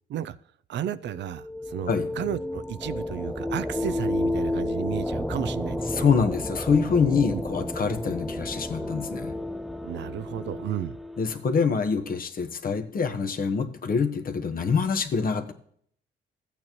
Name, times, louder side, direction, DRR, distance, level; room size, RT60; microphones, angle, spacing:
voice 1, 0.7-6.1 7.3-7.4 9.8-11.0, right 10 dB, 65° right, 0.5 m, -33 dB
sound 1, 1.0-11.6, left 1 dB, ahead, 0.4 m, -32 dB
voice 2, 5.9-9.4 11.2-15.5, left 5 dB, 45° left, 1.1 m, -25 dB
13.5 x 8.8 x 3.0 m
cardioid pair, 90°, 20 cm